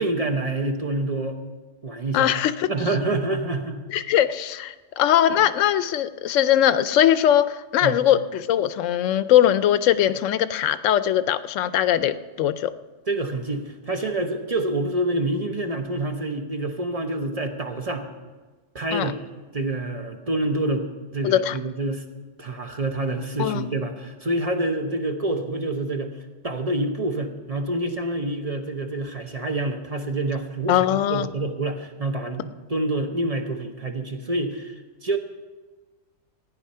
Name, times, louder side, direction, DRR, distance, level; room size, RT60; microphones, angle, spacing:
voice 1, 0.0-1.4 1.8-2.3 2.7-3.8 5.3-5.4 7.8-8.0 13.1-18.1 18.7-19.2 19.5-22.0 22.4-26.1 26.4-35.2, right 2 dB, 35° right, 4 dB, 0.9 m, -27 dB
voice 2, 2.1-2.7 3.9-12.7 18.9-19.1 21.2-21.6 23.4-23.7 30.7-31.3, left 11 dB, 85° left, 14 dB, 0.9 m, -21 dB
14.5 x 9.6 x 5.6 m, 1.3 s
omnidirectional pair, 1.3 m